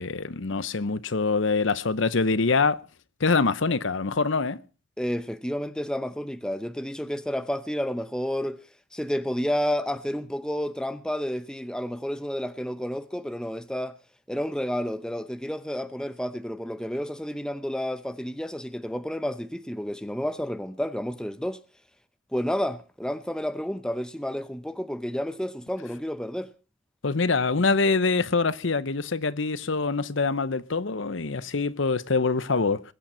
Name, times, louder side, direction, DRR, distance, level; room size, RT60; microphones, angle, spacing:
voice 1, 0.0-2.8 3.2-4.6 27.0-32.8, left 4 dB, 65° left, 0.8 m, -24 dB
voice 2, 5.0-8.6 8.9-14.0 14.3-21.6 22.3-26.5, equal, 5° left, 0.7 m, -30 dB
21.5 x 9.2 x 5.6 m
head